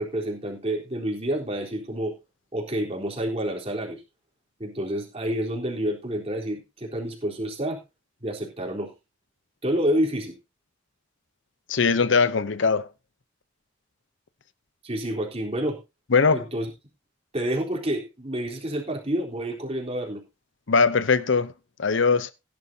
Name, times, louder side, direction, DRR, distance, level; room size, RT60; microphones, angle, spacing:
voice 1, 0.0-2.1 2.5-4.0 4.6-7.8 8.2-8.9 9.6-10.3 14.8-15.8 16.3-16.7 17.3-20.2, right 1 dB, 30° right, 3.7 m, -28 dB
voice 2, 11.7-12.9 16.1-16.5 20.7-21.5 21.8-22.3, left 5 dB, 70° left, 0.7 m, -21 dB
16.5 x 10.5 x 2.8 m
head